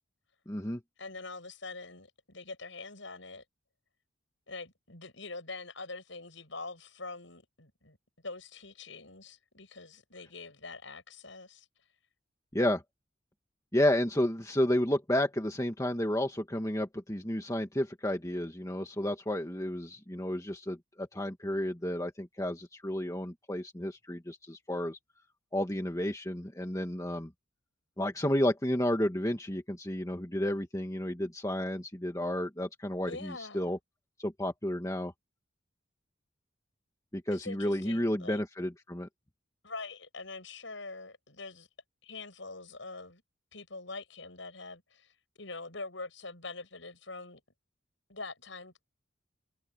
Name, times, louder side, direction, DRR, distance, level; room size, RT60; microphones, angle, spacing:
voice 1, 0.5-0.8 12.5-12.8 13.7-25.0 25.5-27.3 28.0-33.8 34.2-35.1 37.1-39.1, left 1 dB, 15° left, 1.8 m, -31 dB
voice 2, 1.0-3.4 4.5-8.0 8.2-11.7 33.1-33.7 37.3-38.4 39.6-41.7 42.0-43.2 43.5-47.4 48.1-48.7, left 3 dB, 70° left, 7.2 m, -44 dB
head